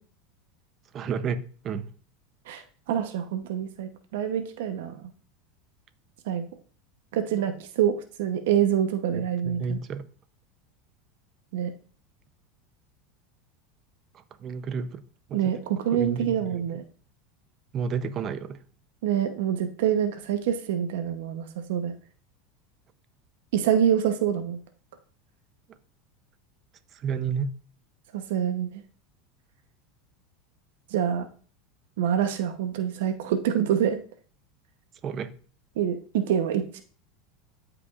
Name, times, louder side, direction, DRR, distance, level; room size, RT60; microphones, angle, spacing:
voice 1, 0.9-1.9 9.1-10.1 14.1-15.0 15.3-16.7 17.7-18.6 26.9-27.5 35.0-35.3, right 6 dB, 30° right, 0.6 m, -32 dB
voice 2, 2.5-5.1 6.3-6.4 7.1-9.8 11.5-11.7 15.3-16.8 19.0-21.9 23.5-24.6 28.1-28.7 30.9-31.3 32.0-34.0 35.8-36.8, right 9 dB, 80° right, 0.8 m, -26 dB
13.0 x 5.0 x 2.4 m
supercardioid pair, 145°, 0 cm